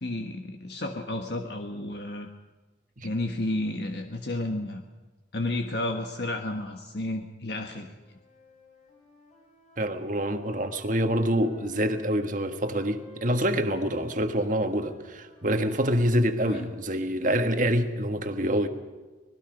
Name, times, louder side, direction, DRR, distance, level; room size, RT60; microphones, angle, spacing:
voice 1, 0.0-2.3 3.0-4.8 5.3-7.9 16.5-16.6, left 2 dB, 60° left, 4 dB, 1.4 m, -31 dB
sound 1, 8.0-12.1 12.6-16.8, left 4 dB, 40° left, 6.3 m, -53 dB
voice 2, 9.8-18.7, equal, 45° right, 6 dB, 1.6 m, -26 dB
25.5 x 19.5 x 5.2 m, 1.3 s
head